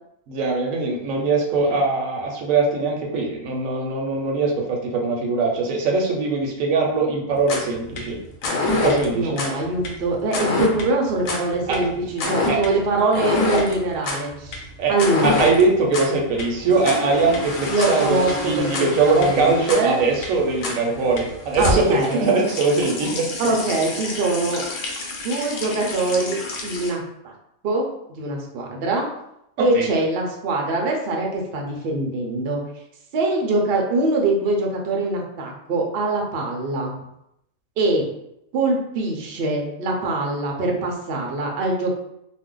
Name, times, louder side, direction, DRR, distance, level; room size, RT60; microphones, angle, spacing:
voice 1, 0.3-8.2 8.7-9.4 11.7-11.9 12.4-12.6 14.8-14.9 15.2-23.5 29.6-29.9, right 3 dB, 75° right, 0 dB, 1.0 m, -21 dB
sound 1, 7.4-26.9, left 2 dB, 75° left, 1.0 m, -27 dB
voice 2, 9.1-14.6 14.9-15.4 17.7-18.3 18.6-20.0 21.6-22.3 23.4-24.6 25.2-27.3 27.6-29.1 29.6-32.6 33.1-36.9 37.8-38.1 38.5-41.9, right 2 dB, 60° right, 0 dB, 0.7 m, -23 dB
2.6 x 2.1 x 3.7 m, 0.80 s
omnidirectional pair, 1.4 m